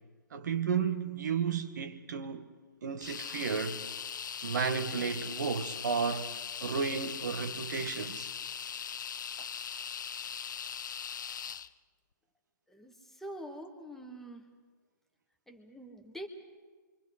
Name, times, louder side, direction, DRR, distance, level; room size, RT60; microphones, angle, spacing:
voice 1, 0.3-2.5 2.8-3.8 4.4-6.3 6.6-8.3 9.4-9.5, right 6 dB, 60° right, 1.4 m, -33 dB
sound 1, 3.0-11.7, left 8 dB, 65° left, 0.6 m, -40 dB
voice 2, 12.7-14.5 15.5-16.3, right 1 dB, 5° left, 1.4 m, -45 dB
27.0 x 23.5 x 5.0 m
hypercardioid pair, 135°, 11 cm